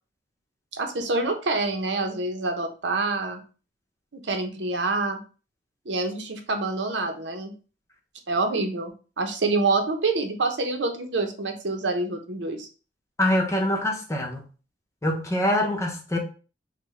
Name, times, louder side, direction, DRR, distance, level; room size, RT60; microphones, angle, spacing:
voice 1, 0.7-3.4 4.1-5.2 5.9-7.5 8.3-8.9 9.2-12.7, right 3 dB, 70° right, 0.8 m, -26 dB
voice 2, 13.2-14.4 15.0-16.2, left 1 dB, 15° left, 0.8 m, -24 dB
5.8 x 2.2 x 3.2 m
head